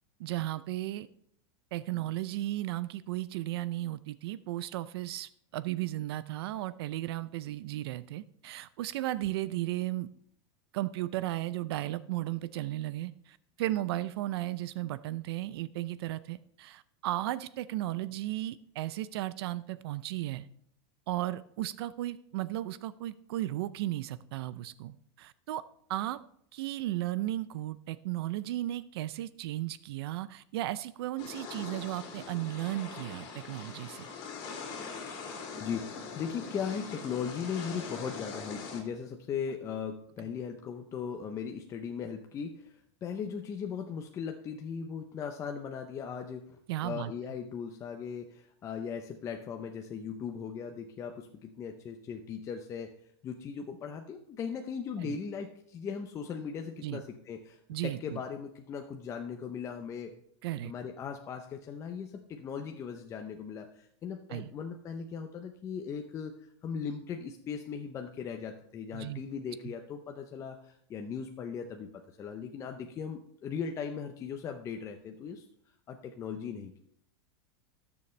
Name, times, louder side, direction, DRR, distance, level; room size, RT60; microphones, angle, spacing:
voice 1, 0.2-1.1 1.7-10.1 10.7-20.5 21.1-25.6 25.9-26.2 26.5-34.1 46.7-47.1 55.0-55.2 56.8-57.0 57.7-58.2 60.4-60.7 64.3-64.5 68.9-69.2 69.6-69.7, right 15 dB, 65° right, 16 dB, 0.5 m, -35 dB
sound 1, 31.2-38.8, left 5 dB, 40° left, 3.0 m, -42 dB
voice 2, 35.6-46.5 46.8-52.9 53.2-60.1 60.6-66.3 66.6-71.9 72.2-75.4 75.9-76.7, left 6 dB, 20° left, 4 dB, 0.7 m, -38 dB
17.5 x 7.0 x 3.2 m, 0.69 s
supercardioid pair, 155°, 14 cm